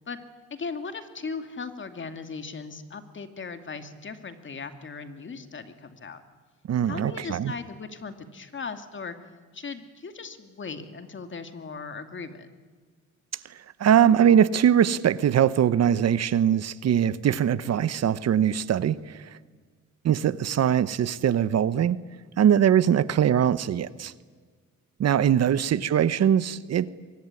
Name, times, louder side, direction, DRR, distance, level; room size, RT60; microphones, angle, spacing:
voice 1, 0.5-6.2 6.9-9.2 9.5-12.5 25.4-25.7, left 4 dB, 40° left, 8 dB, 2.6 m, -38 dB
voice 2, 6.7-7.5 13.5-19.3 20.0-22.0 22.4-24.1 25.0-26.9, right 9 dB, 55° right, 16 dB, 1.0 m, -22 dB
24.0 x 23.0 x 9.8 m, 1.5 s
cardioid pair, 90°, 30 cm